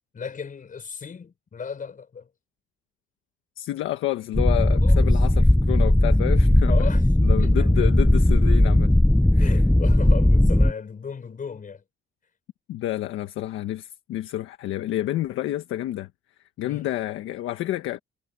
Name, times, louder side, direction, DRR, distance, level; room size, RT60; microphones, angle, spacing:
voice 1, 0.1-2.3 4.8-5.2 6.7-7.1 7.4-7.9 9.4-11.8 16.6-16.9, left 6 dB, 45° left, 5.9 m, -36 dB
voice 2, 3.6-6.9 7.2-8.9 9.3-9.5 12.7-16.1 16.6-18.0, left 14 dB, 90° left, 1.5 m, -29 dB
sound 1, 4.3-10.7, left 1 dB, 5° left, 0.5 m, -18 dB
cardioid pair, 90°, 20 cm